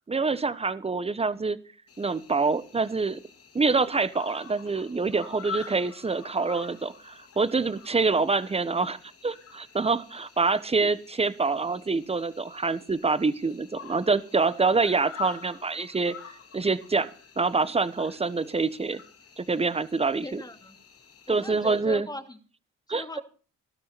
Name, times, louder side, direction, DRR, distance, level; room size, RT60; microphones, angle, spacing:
voice 1, 0.1-1.6 2.0-3.2 3.5-16.1 16.5-17.1 17.4-19.0 19.4-20.4 21.3-22.1 22.9-23.0, right 4 dB, 20° right, 16 dB, 1.1 m, -26 dB
Cricket, 1.9-21.8, left 6 dB, 50° left, 3.3 m, -47 dB
voice 2, 20.2-20.8 21.3-22.4 22.9-23.2, left 2 dB, 15° left, 7 dB, 2.6 m, -39 dB
15.5 x 12.5 x 4.2 m, 0.38 s
cardioid pair, 90°, 30 cm